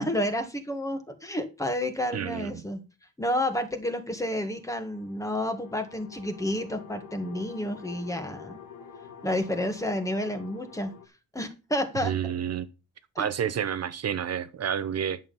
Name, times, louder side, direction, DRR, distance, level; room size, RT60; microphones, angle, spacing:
voice 1, 0.0-2.8 3.2-8.6 9.2-10.9 11.3-12.1 13.2-13.3, left 1 dB, 10° left, 1.7 m, -30 dB
voice 2, 2.1-2.6 12.0-12.7 13.2-15.2, right 8 dB, 55° right, 1.0 m, -29 dB
sound 1, 4.2-11.1, left 7 dB, 85° left, 2.1 m, -48 dB
10.5 x 7.3 x 5.5 m
wide cardioid pair, 140°, 31 cm